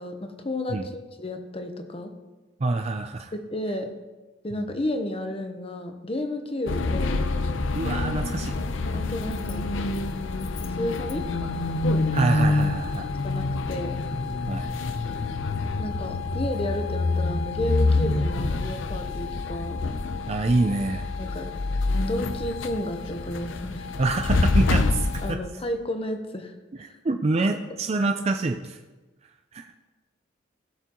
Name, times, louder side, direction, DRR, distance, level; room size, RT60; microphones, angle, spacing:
voice 1, 0.0-2.2 3.3-3.9 4.4-7.2 8.9-9.7 10.8-11.3 13.2-14.0 15.8-19.8 21.2-21.5 22.0-23.9 25.2-26.5 26.8-27.0 27.4-27.5, left 1 dB, 30° left, 6 dB, 0.9 m, -32 dB
voice 2, 2.6-3.3 4.5-4.7 7.7-8.5 12.1-13.1 14.5-14.7 20.3-21.1 24.0-25.4 26.8-28.8 29.5-29.9, right 2 dB, 35° right, 5 dB, 0.4 m, -26 dB
sound 1, 6.7-25.4, left 2 dB, 80° left, 0.6 m, -27 dB
16.0 x 6.9 x 3.0 m, 1.2 s
head